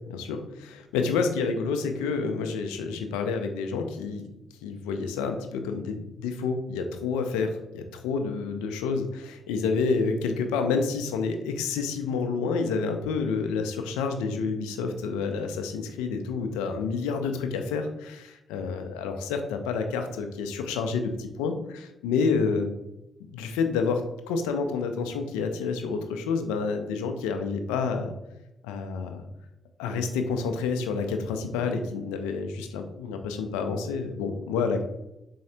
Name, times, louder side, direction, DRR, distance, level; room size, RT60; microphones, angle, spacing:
voice 1, 0.1-4.2 4.6-22.7 23.3-24.0 24.3-28.1 28.6-29.2 29.8-34.8, left 5 dB, 85° left, 6 dB, 0.4 m, -29 dB
4.2 x 3.1 x 2.8 m, 0.92 s
hypercardioid pair, 45°, 0 cm